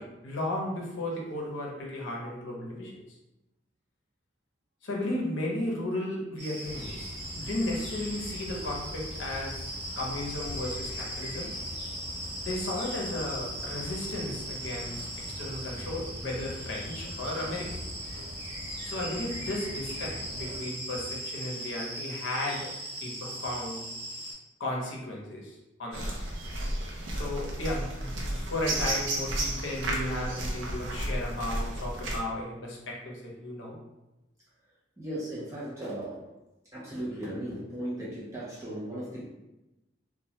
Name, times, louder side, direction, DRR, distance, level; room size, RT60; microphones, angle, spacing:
voice 1, 0.0-2.9 4.8-9.7 10.0-11.5 12.4-15.1 15.4-17.7 18.8-22.6 23.0-23.8 24.6-25.5 25.8-26.1 27.1-33.7, left 1 dB, 75° left, -3 dB, 0.7 m, -34 dB
sound 1, 6.4-24.3, equal, 55° right, 1.1 m, -39 dB
sound 2, 6.6-20.6, left 1 dB, 30° left, 0.7 m, -43 dB
sound 3, 25.9-32.2, right 1 dB, 75° right, 0.5 m, -32 dB
voice 2, 35.0-36.2 36.7-39.3, right 1 dB, 15° right, -8 dB, 0.4 m, -36 dB
2.2 x 2.1 x 2.7 m, 0.98 s
head